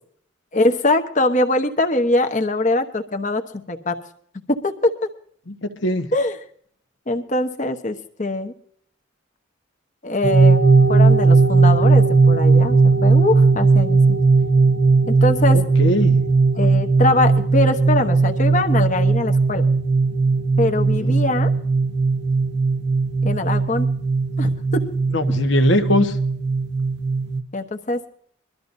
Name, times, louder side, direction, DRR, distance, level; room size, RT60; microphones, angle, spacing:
voice 1, 0.5-4.0 4.5-4.9 6.1-6.3 7.1-8.5 10.0-10.6 10.9-14.2 15.1-15.6 16.6-19.6 20.6-21.5 23.2-23.9 24.4-24.8 27.5-28.0, left 2 dB, 35° left, 6 dB, 1.1 m, -22 dB
voice 2, 5.5-6.1 15.5-16.2 20.9-21.2 25.1-26.2, left 1 dB, 65° left, 7 dB, 1.2 m, -21 dB
sound 1, 10.2-27.4, right 4 dB, 55° right, 0.8 m, -17 dB
22.5 x 13.0 x 2.7 m, 0.62 s
head